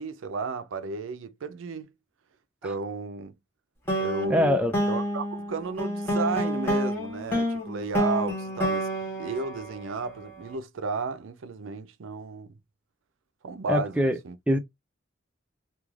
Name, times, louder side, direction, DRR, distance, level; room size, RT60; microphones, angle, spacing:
voice 1, 0.0-1.9 2.6-3.3 4.0-12.5 13.4-14.0 14.2-14.4, right 4 dB, 80° right, 0.5 m, -33 dB
sound 1, 3.9-10.3, equal, 10° left, 0.9 m, -29 dB
voice 2, 4.3-4.7 13.7-14.2 14.5-14.6, left 1 dB, 5° right, 0.3 m, -23 dB
2.4 x 2.3 x 3.1 m
head